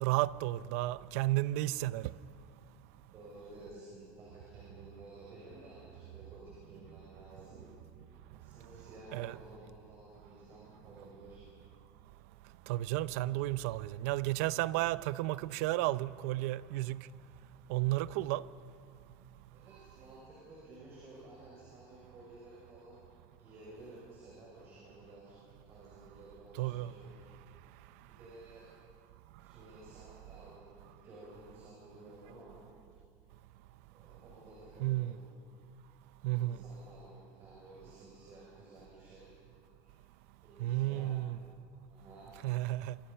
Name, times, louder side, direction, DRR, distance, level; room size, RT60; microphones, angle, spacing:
voice 1, 0.0-2.1 9.1-9.3 12.7-17.1 17.7-18.5 26.6-26.9 34.8-35.1 36.2-36.6 40.6-41.4 42.4-43.0, right 17 dB, 80° right, 0.6 m, -32 dB
voice 2, 3.1-7.6 8.3-11.5 19.5-23.0 23.4-27.1 28.1-28.7 29.4-30.8 31.0-32.6 33.9-35.3 36.3-39.3 39.8-39.9 40.4-41.3 41.9-42.3, right 2 dB, 35° right, 6.6 m, -53 dB
27.5 x 26.0 x 5.7 m
cardioid pair, 170°, 8 cm